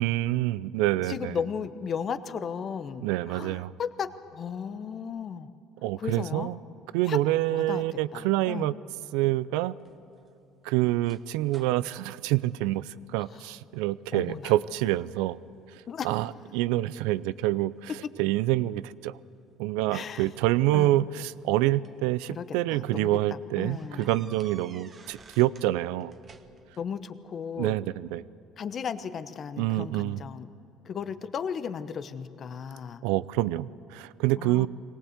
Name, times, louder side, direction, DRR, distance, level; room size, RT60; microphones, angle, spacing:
voice 1, 0.0-1.4 3.0-3.7 5.8-6.6 6.9-8.7 9.1-9.7 10.6-15.4 15.7-17.9 18.2-19.2 19.6-26.1 27.6-28.2 29.6-30.2 33.0-34.7, right 16 dB, 80° right, 19 dB, 0.4 m, -27 dB
voice 2, 1.1-5.5 6.0-6.5 7.0-7.2 7.5-7.8 8.1-8.7 13.2-13.4 14.1-14.5 15.9-16.1 19.9-20.3 20.7-21.0 22.3-24.3 26.8-27.8 28.6-30.5 30.8-33.0 34.4-34.7, left 7 dB, 45° left, 12 dB, 0.9 m, -35 dB
sound 1, 9.8-13.2 13.7-14.0 14.3-15.0 15.4-16.1 16.7-18.2 19.3-19.5 20.7-22.1 22.6-22.8 23.1-23.2 23.7-25.7 26.0-26.8, right 4 dB, 40° right, 1.3 m, -55 dB
22.5 x 18.5 x 8.0 m, 2.7 s
supercardioid pair, 85°, 0 cm